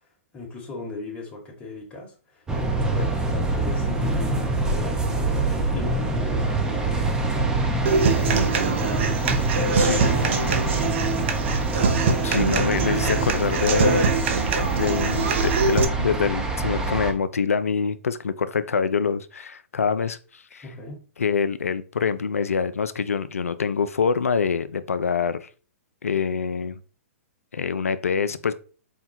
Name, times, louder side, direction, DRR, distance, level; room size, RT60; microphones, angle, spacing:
voice 1, 0.3-11.8 20.6-21.0, left 2 dB, 15° left, 1.3 m, -38 dB
sound 1, 2.5-17.1, right 2 dB, 10° right, 0.7 m, -25 dB
Human voice / Acoustic guitar, 7.9-15.8, right 4 dB, 55° right, 0.7 m, -24 dB
voice 2, 12.2-14.2 14.7-20.7 21.2-25.5 26.0-26.8 27.5-28.5, left 6 dB, 85° left, 0.4 m, -25 dB
4.5 x 2.2 x 4.2 m
hypercardioid pair, 120°, 8 cm